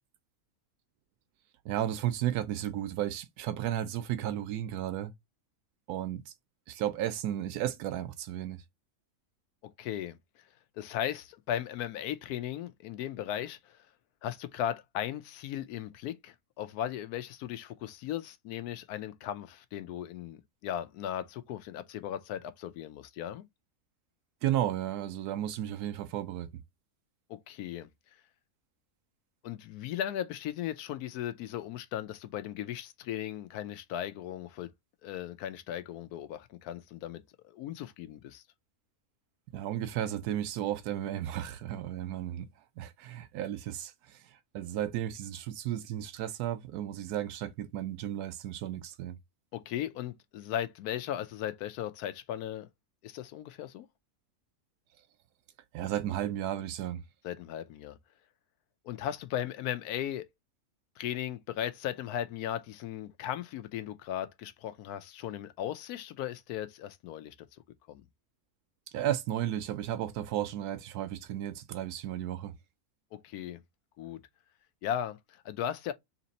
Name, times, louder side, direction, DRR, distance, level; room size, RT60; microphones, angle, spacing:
voice 1, 1.6-5.1 5.9-6.2 6.7-8.6 24.4-26.5 39.5-42.4 42.8-44.2 44.5-49.2 55.7-57.0 68.9-72.5, right 11 dB, 90° right, 1.1 m, -33 dB
voice 2, 9.6-10.4 10.8-13.8 14.2-23.4 27.3-27.9 29.4-34.7 35.0-38.4 49.5-52.7 53.0-53.9 57.2-58.0 58.8-60.3 61.0-67.6 67.9-68.0 73.1-73.6 74.0-74.2 74.8-75.9, left 11 dB, 90° left, 1.1 m, -37 dB
3.4 x 2.8 x 4.0 m
omnidirectional pair, 1.6 m